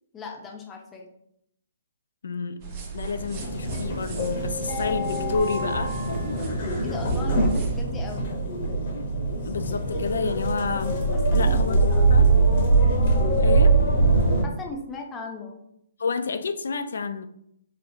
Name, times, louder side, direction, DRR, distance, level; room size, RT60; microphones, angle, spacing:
voice 1, 0.1-1.1 6.8-8.3 11.1-11.6 11.9-12.2 14.4-15.6, left 3 dB, 15° left, 1 dB, 0.6 m, -38 dB
voice 2, 2.2-2.6 2.9-5.9 9.4-11.8 12.1-12.3 13.4-13.8 16.0-17.3, left 4 dB, 75° left, 9 dB, 0.3 m, -29 dB
sound 1, 2.6-7.8, right 6 dB, 35° right, 0.7 m, -35 dB
sound 2, 3.2-14.4, right 3 dB, 50° left, 0.8 m, -22 dB
4.9 x 2.1 x 2.7 m, 0.75 s
hypercardioid pair, 140°, 0 cm